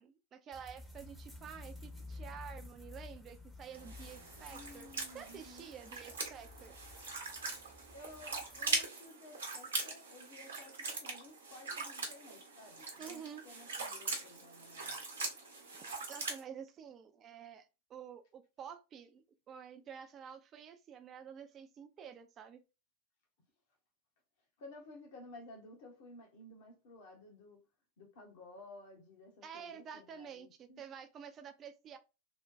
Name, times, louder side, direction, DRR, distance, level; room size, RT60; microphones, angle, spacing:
voice 1, 0.0-4.9 5.1-6.8 13.0-13.4 15.7-22.6 29.4-32.0, right 7 dB, 30° right, 0.4 m, -50 dB
sound 1, 0.5-8.9, left 2 dB, ahead, 0.7 m, -52 dB
sound 2, 3.7-16.4, right 3 dB, 65° right, 0.9 m, -41 dB
voice 2, 4.5-5.7 7.9-15.0 24.6-27.6 28.0-30.8, left 2 dB, 50° left, 1.0 m, -55 dB
3.3 x 2.1 x 2.5 m
figure-of-eight pair, 90°, 0 cm